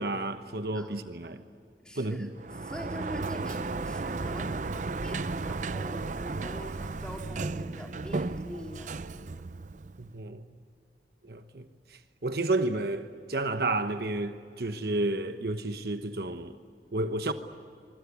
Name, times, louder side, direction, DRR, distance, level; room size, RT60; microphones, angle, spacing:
voice 1, 0.0-1.4 2.0-2.3 10.0-10.5 11.2-16.6 16.9-17.3, right 2 dB, 60° right, 1.1 m, -31 dB
voice 2, 1.8-2.3 2.6-9.4, equal, 5° left, 3.9 m, -43 dB
Sliding door, 2.4-10.2, right 3 dB, 45° right, 0.5 m, -34 dB
25.0 x 24.5 x 8.5 m
head